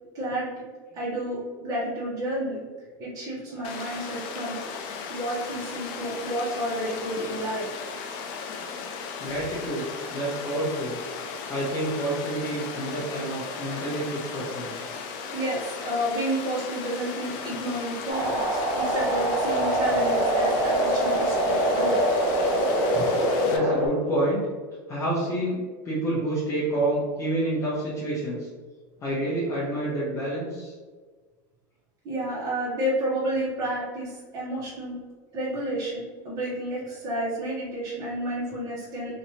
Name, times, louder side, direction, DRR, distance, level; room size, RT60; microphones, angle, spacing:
voice 1, 0.1-0.5 0.9-2.6 3.0-4.6 5.1-7.7 15.3-22.0 22.9-23.1 32.0-35.0 35.3-39.2, right 1 dB, 35° right, -9 dB, 1.2 m, -30 dB
Water, 3.6-23.6, left 5 dB, 55° left, 0.4 m, -36 dB
voice 2, 9.2-9.9 10.1-11.0 11.5-14.7 22.6-24.4 24.9-28.5 29.0-30.7, right 1 dB, 30° left, -7 dB, 0.8 m, -29 dB
sound 1, 18.1-23.9, right 1 dB, 55° right, 1.0 m, -24 dB
3.1 x 2.8 x 2.8 m, 1.4 s
supercardioid pair, 145°, 10 cm